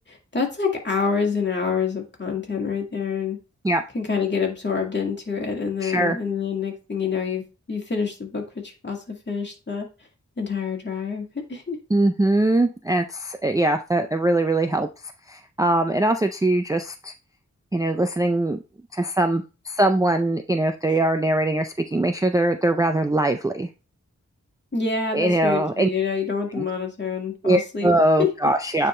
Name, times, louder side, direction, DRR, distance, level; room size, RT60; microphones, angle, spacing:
voice 1, 0.1-3.4 3.9-7.4 7.7-9.9 10.4-11.8 24.7-27.9 28.2-28.3, left 5 dB, 35° left, 0 dB, 2.0 m, -27 dB
voice 2, 5.8-6.2 11.9-14.9 15.3-17.1 17.7-18.6 18.9-23.7 25.1-25.9 26.6-26.7 27.4-28.9, right 1 dB, 10° right, 6 dB, 0.4 m, -21 dB
9.1 x 3.6 x 3.2 m, 0.31 s
wide cardioid pair, 105°, 30 cm